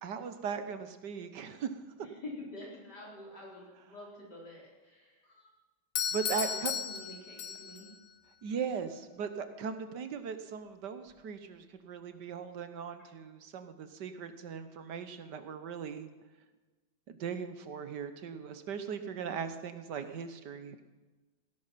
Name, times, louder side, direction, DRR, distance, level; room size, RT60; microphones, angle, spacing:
voice 1, 0.0-1.8 6.1-6.7 8.4-16.1 17.1-20.8, right 6 dB, 75° right, 9 dB, 1.6 m, -38 dB
voice 2, 2.0-5.5 6.3-7.9, left 2 dB, 70° left, -4 dB, 4.9 m, -47 dB
Doorbell, 6.0-8.0, left 8 dB, 85° left, 1.5 m, -35 dB
17.0 x 11.0 x 5.7 m, 1.2 s
omnidirectional pair, 1.9 m